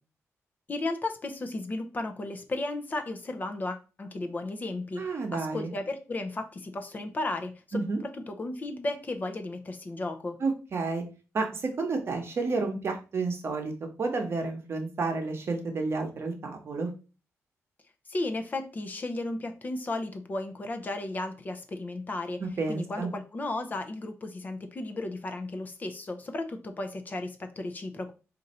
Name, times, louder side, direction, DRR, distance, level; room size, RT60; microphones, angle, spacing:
voice 1, 0.7-10.4 18.1-22.4 22.7-28.1, left 2 dB, 35° left, 6 dB, 0.6 m, -34 dB
voice 2, 5.0-5.7 7.7-8.0 10.4-11.0 11.3-16.9 22.4-23.1, right 3 dB, 50° right, 4 dB, 0.9 m, -31 dB
3.9 x 2.6 x 4.2 m, 0.33 s
wide cardioid pair, 125°, 5 cm